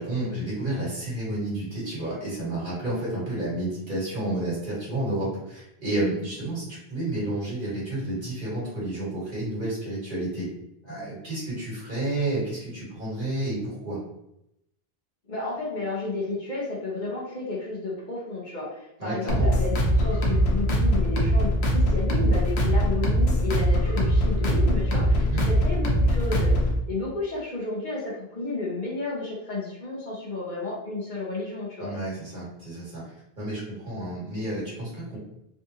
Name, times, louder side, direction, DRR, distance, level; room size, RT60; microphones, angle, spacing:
voice 1, 0.0-10.5 10.8-14.0 19.0-19.5 25.2-25.4 31.8-33.0 33.4-35.2, right 1 dB, 55° right, -8 dB, 1.8 m, -30 dB
voice 2, 15.3-26.6 26.9-31.9, left 2 dB, 50° left, -5 dB, 1.0 m, -32 dB
sound 1, 19.3-26.8, equal, 85° left, 1.0 m, -22 dB
3.6 x 2.5 x 2.7 m, 0.81 s
omnidirectional pair, 1.0 m